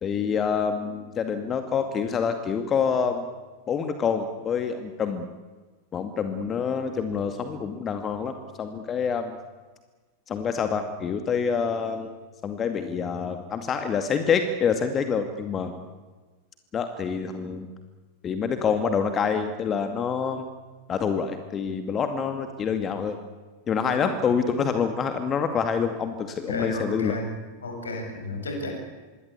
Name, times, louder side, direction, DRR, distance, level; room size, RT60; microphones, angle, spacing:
voice 1, 0.0-3.3 3.7-5.3 5.9-9.4 10.3-12.1 12.4-15.7 16.7-17.7 18.2-20.4 20.9-23.2 23.7-27.2, left 6 dB, 25° left, 8 dB, 2.2 m, -26 dB
voice 2, 26.5-27.3 27.6-28.7, left 2 dB, 70° left, 3 dB, 7.8 m, -32 dB
26.0 x 22.0 x 8.5 m, 1.3 s
figure-of-eight pair, 90°, 0 cm